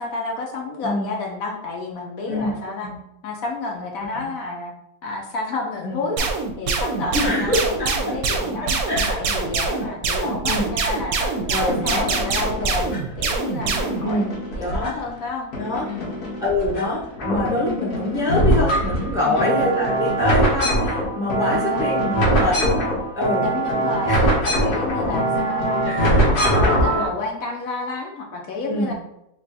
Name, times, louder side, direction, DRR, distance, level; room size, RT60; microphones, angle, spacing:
voice 1, 0.0-2.9 3.2-4.7 5.0-14.2 14.5-15.5 15.9-16.1 19.2-19.5 21.4-21.9 23.4-25.9 26.2-28.9, left 3 dB, 70° left, 0 dB, 1.1 m, -30 dB
sound 1, 6.2-14.0, right 4 dB, 75° right, 1.0 m, -24 dB
voice 2, 7.1-8.1 8.9-9.2 9.8-9.9 10.5-10.7 11.5-12.1 14.0-14.3 14.6-14.9 15.6-15.9 16.4-22.9 23.2-23.5 24.1-24.3 24.5-24.7 25.8-26.3 26.9-27.2 28.7-28.9, left 1 dB, 5° right, -5 dB, 0.8 m, -25 dB
sound 2, 11.7-13.2 13.6-15.2 15.5-16.8 17.1-27.0, right 1 dB, 90° left, 1.6 m, -22 dB
3.3 x 2.4 x 4.0 m, 0.80 s
omnidirectional pair, 1.6 m